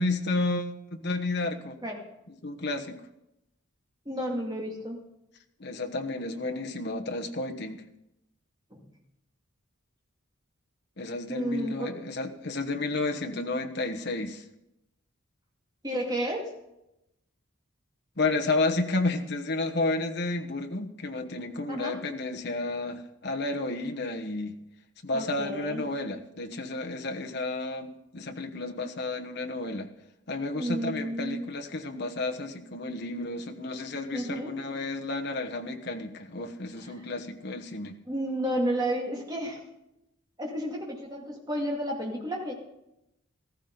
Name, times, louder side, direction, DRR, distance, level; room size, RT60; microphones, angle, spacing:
voice 1, 0.0-1.8 2.4-3.0 5.6-7.8 11.0-14.4 18.2-24.5 25.0-29.9 30.3-38.0, left 2 dB, 50° left, 4 dB, 1.2 m, -31 dB
voice 2, 4.1-5.0 8.7-8.8 11.3-12.0 15.8-16.5 21.7-22.0 25.1-25.9 30.5-31.5 34.1-34.6 36.9-37.1 38.1-39.6 40.4-42.5, right 1 dB, 20° right, -1 dB, 2.4 m, -32 dB
15.0 x 14.5 x 3.9 m, 0.87 s
head